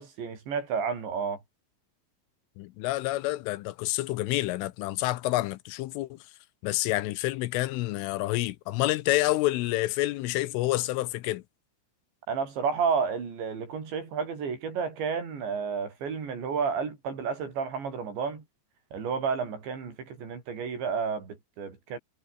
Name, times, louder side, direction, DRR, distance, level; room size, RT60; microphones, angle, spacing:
voice 1, 0.0-1.4 12.3-18.4 18.9-22.0, right 6 dB, 60° right, 7.6 m, -31 dB
voice 2, 2.6-6.2 6.6-11.4, left 17 dB, 80° left, 3.4 m, -28 dB
omnidirectional pair, 5.7 m